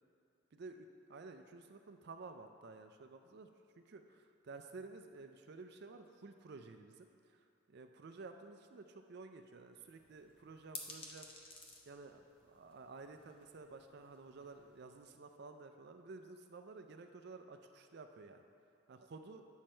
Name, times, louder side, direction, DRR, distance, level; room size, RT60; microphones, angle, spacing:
voice 1, 0.5-3.5 3.8-11.6 11.9-18.4 18.9-19.4, right 3 dB, 50° right, 7 dB, 0.4 m, -53 dB
sound 1, 9.8-15.0, left 2 dB, 25° left, 0.8 m, -55 dB
9.3 x 6.4 x 4.4 m, 2.4 s
head